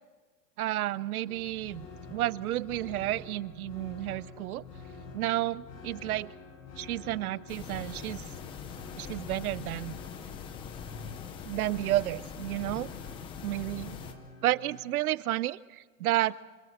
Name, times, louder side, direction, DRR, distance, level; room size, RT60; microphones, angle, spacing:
voice 1, 0.6-4.6 5.1-6.3 6.8-8.2 9.0-9.9 11.4-12.9 13.4-14.0 14.4-16.4, right 15 dB, 60° right, 20 dB, 0.8 m, -31 dB
sound 1, 1.3-14.8, left 3 dB, 75° left, 7.6 m, -49 dB
sound 2, 7.5-14.1, left 7 dB, 10° left, 0.6 m, -42 dB
28.5 x 18.0 x 7.9 m, 1.4 s
supercardioid pair, 165°, 48 cm